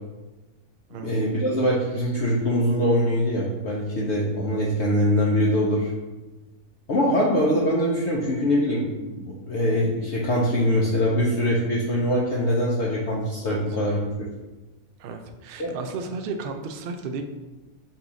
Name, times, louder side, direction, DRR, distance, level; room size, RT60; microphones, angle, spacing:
voice 1, 1.0-5.9 6.9-14.0 15.6-15.8, equal, 60° left, -4 dB, 0.8 m, -23 dB
voice 2, 15.0-17.2, right 4 dB, 90° right, 5 dB, 0.4 m, -33 dB
5.5 x 2.4 x 3.9 m, 1.1 s
omnidirectional pair, 1.5 m